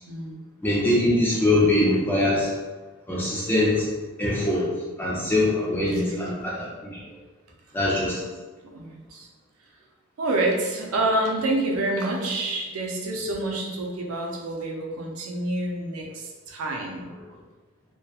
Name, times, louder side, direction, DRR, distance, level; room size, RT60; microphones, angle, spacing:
voice 1, 0.1-0.4 5.9-6.3 8.7-9.3 10.2-17.1, right 1 dB, 90° right, 0 dB, 0.5 m, -28 dB
voice 2, 0.6-2.5 3.1-3.8 4.2-4.6 5.0-7.0 7.7-8.2, left 1 dB, 10° left, -6 dB, 0.4 m, -23 dB
2.7 x 2.1 x 2.3 m, 1.3 s
head